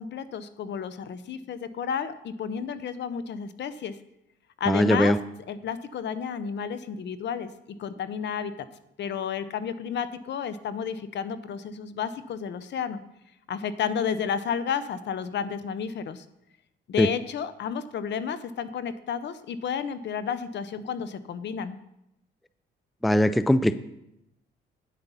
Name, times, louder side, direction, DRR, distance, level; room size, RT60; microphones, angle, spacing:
voice 1, 0.0-4.0 4.6-5.1 5.5-8.5 9.0-13.0 13.5-16.2 16.9-21.8, left 7 dB, 65° left, 13 dB, 0.8 m, -31 dB
voice 2, 4.7-5.2 17.0-17.1 23.0-23.7, equal, ahead, 14 dB, 0.4 m, -20 dB
9.5 x 8.3 x 5.6 m, 0.82 s
cardioid pair, 90°, 20 cm